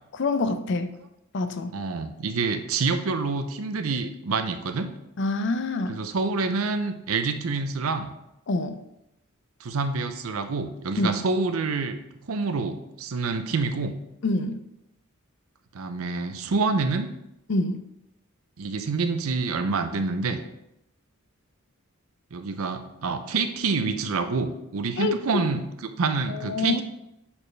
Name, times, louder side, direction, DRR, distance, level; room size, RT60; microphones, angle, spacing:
voice 1, 0.1-1.0 1.3-1.7 5.2-6.0 8.5-8.8 11.0-11.1 14.2-14.6 17.5-17.8 25.0-25.4 26.3-26.8, left 2 dB, 55° left, 10 dB, 0.5 m, -26 dB
voice 2, 1.7-4.9 5.9-8.1 9.6-13.9 15.7-17.1 18.6-20.4 22.3-26.8, right 4 dB, 85° right, 8 dB, 0.6 m, -27 dB
7.0 x 4.3 x 3.3 m, 0.84 s
head